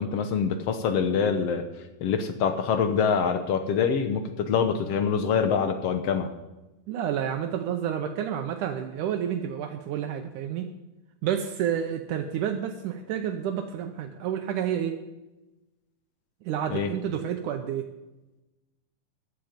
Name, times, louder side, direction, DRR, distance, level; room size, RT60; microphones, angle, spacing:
voice 1, 0.0-1.7 2.0-6.3 16.7-16.9, left 6 dB, 65° left, 8 dB, 1.6 m, -25 dB
voice 2, 6.9-10.7 11.2-15.0 16.5-17.9, right 9 dB, 75° right, 6 dB, 2.2 m, -29 dB
15.0 x 10.5 x 5.2 m, 1.0 s
omnidirectional pair, 3.7 m